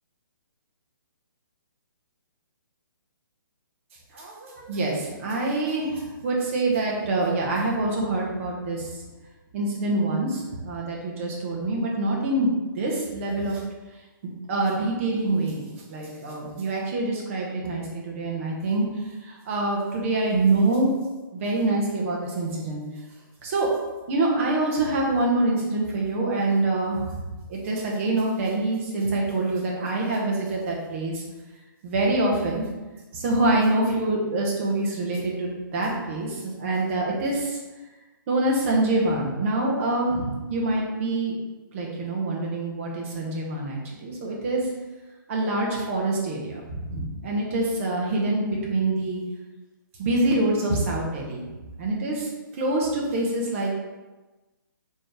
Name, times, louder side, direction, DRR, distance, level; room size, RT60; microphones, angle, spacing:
voice 1, 4.1-8.9 9.5-13.6 14.2-18.8 19.3-20.9 21.3-22.8 23.4-23.7 24.1-27.1 27.5-31.2 31.8-32.6 33.1-37.6 38.3-41.3 41.7-44.7 45.3-49.2 50.0-51.4 51.8-52.3 52.6-53.7, right 2 dB, 35° right, -2 dB, 1.1 m, -25 dB
4.1 x 3.1 x 3.4 m, 1.2 s
hypercardioid pair, 155°, 12 cm